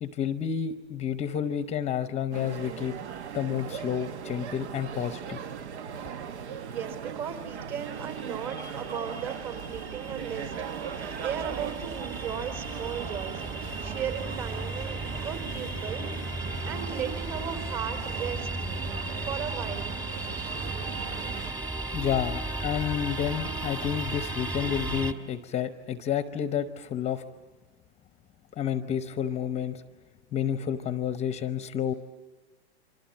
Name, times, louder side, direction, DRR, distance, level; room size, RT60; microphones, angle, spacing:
voice 1, 0.0-3.0 3.3-5.4 21.9-27.2 28.5-29.8 30.3-31.9, left 9 dB, 20° left, 10 dB, 0.8 m, -30 dB
sound 1, 2.3-21.5, right 7 dB, 80° right, 1.1 m, -39 dB
voice 2, 6.6-10.5 10.8-16.3 16.6-18.5 19.2-20.0, right 8 dB, 45° right, 8 dB, 5.1 m, -36 dB
sound 2, 7.7-25.1, right 2 dB, 10° right, 1.6 m, -35 dB
28.0 x 25.0 x 7.4 m, 1.3 s
hypercardioid pair, 135°, 33 cm